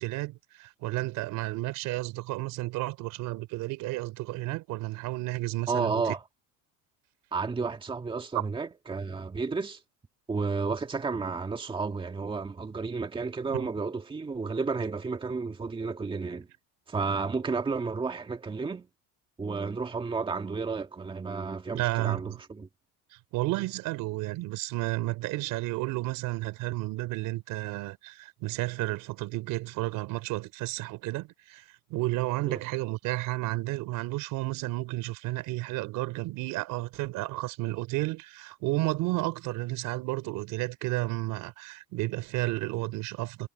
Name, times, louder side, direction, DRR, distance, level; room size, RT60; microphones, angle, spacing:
voice 1, 0.0-6.1 8.3-8.5 13.5-13.7 21.7-22.3 23.1-31.6 31.9-43.5, right 19 dB, 65° right, 3.7 m, -32 dB
voice 2, 5.7-6.2 7.3-9.8 10.3-16.5 16.9-18.9 19.4-22.7 32.5-32.6, right 4 dB, 15° right, 1.9 m, -32 dB
cardioid pair, 150°, 35 cm